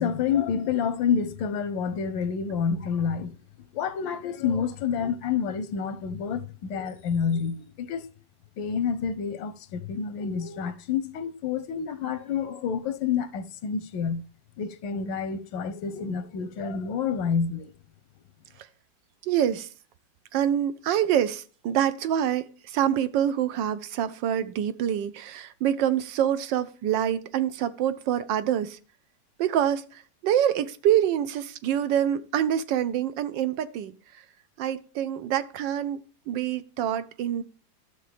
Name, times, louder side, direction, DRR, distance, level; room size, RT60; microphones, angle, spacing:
voice 1, 0.0-3.4 3.7-8.0 8.6-14.2 14.6-17.7, left 6 dB, 90° left, 1.4 m, -28 dB
voice 2, 19.2-19.7 20.3-28.8 29.4-33.9 34.6-37.4, right 10 dB, 80° right, 1.3 m, -26 dB
12.5 x 6.6 x 3.4 m
omnidirectional pair, 2.0 m